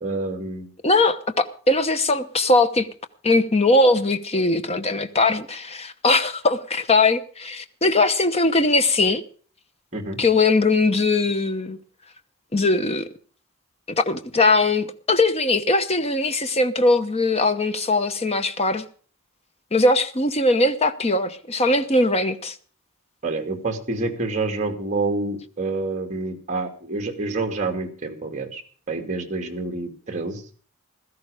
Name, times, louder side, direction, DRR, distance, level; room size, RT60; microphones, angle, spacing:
voice 1, 0.0-0.7 9.9-10.2 23.2-28.6 28.9-30.4, right 3 dB, 35° right, 2.5 m, -28 dB
voice 2, 0.8-2.9 3.2-9.2 10.2-11.8 12.5-13.1 13.9-18.8 19.7-22.6, left 2 dB, 30° left, 1.0 m, -20 dB
16.5 x 13.5 x 5.0 m
head